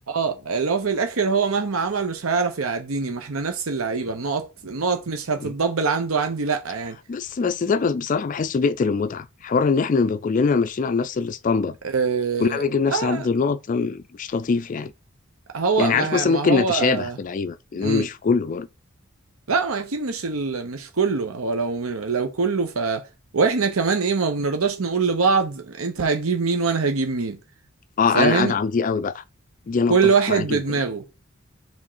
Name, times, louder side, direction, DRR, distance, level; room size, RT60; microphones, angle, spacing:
voice 1, 0.1-7.0 11.9-12.6 12.9-13.3 15.5-17.2 17.8-18.1 19.5-23.0 23.3-27.4 28.1-28.5 29.9-31.0, right 4 dB, 90° right, 0.9 m, -23 dB
voice 2, 7.1-11.8 12.4-14.9 15.8-18.7 28.0-29.2 29.7-30.0 30.3-30.8, left 5 dB, 40° left, 0.3 m, -23 dB
5.0 x 3.7 x 5.5 m
head